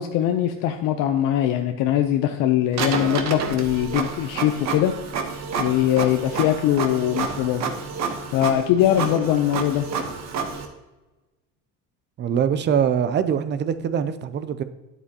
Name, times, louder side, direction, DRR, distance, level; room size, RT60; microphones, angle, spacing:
voice 1, 0.0-4.9 5.6-7.6 8.3-9.9, left 11 dB, 65° left, 0.7 m, -21 dB
Printer, 2.7-10.7, right 5 dB, 45° right, 1.2 m, -29 dB
voice 2, 12.2-14.6, right 8 dB, 30° right, 0.5 m, -23 dB
10.0 x 8.1 x 2.9 m
cardioid pair, 130°, 37 cm